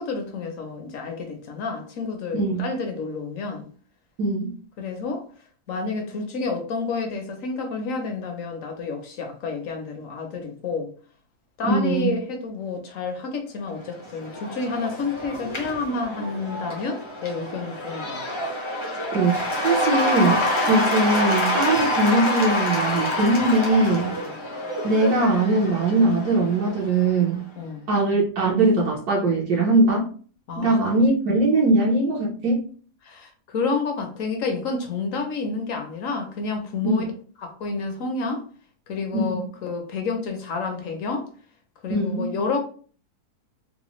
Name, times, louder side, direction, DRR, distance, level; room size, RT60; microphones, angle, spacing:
voice 1, 0.0-3.7 4.8-5.2 5.7-10.9 11.6-18.2 24.2-24.3 27.6-27.8 30.5-30.8 33.0-37.1 37.4-38.4 38.9-41.3 41.8-42.6, left 4 dB, 60° left, 3 dB, 1.0 m, -29 dB
voice 2, 4.2-4.5 11.6-12.1 19.1-24.1 24.8-27.4 27.9-30.1 30.6-32.6 36.8-37.0 39.1-39.4 41.9-42.3, right 2 dB, 70° right, -3 dB, 1.4 m, -21 dB
Cheering / Applause / Crowd, 13.8-27.3, left 1 dB, 30° left, 0.5 m, -27 dB
4.0 x 2.1 x 3.0 m, 0.42 s
omnidirectional pair, 1.8 m